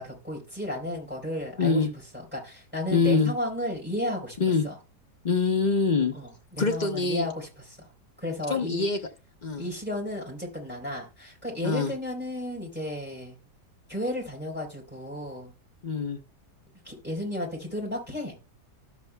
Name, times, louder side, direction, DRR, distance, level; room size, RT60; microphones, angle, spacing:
voice 1, 0.0-4.4 4.6-4.8 6.1-7.9 8.2-8.8 9.6-13.4 13.9-15.5 16.8-18.4, left 1 dB, 5° right, 0 dB, 3.7 m, -33 dB
voice 2, 1.6-1.9 2.9-3.3 4.4-4.6 5.2-6.1 6.6-7.3 8.5-9.0 9.4-9.6 11.6-11.9 15.8-16.2, left 4 dB, 40° left, 3 dB, 0.6 m, -24 dB
13.0 x 7.2 x 2.2 m, 0.30 s
omnidirectional pair, 1.8 m